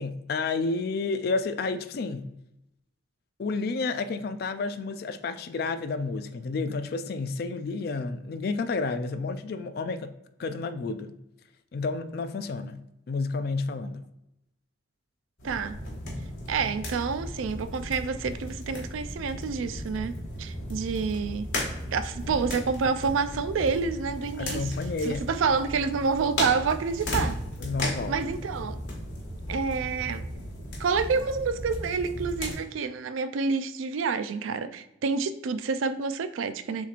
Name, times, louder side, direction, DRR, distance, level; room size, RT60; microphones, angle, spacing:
voice 1, 0.0-2.3 3.4-10.1 10.4-11.1 11.7-12.8 13.1-14.0 24.4-25.3 27.6-28.3, left 3 dB, 50° left, 0.3 m, -30 dB
sound 1, 15.4-32.5, left 1 dB, 80° left, 1.6 m, -35 dB
voice 2, 15.4-15.8 16.5-24.7 25.0-27.4 28.1-28.8 29.5-30.2 30.8-36.9, right 5 dB, 90° right, 0.4 m, -28 dB
7.1 x 3.0 x 2.4 m
head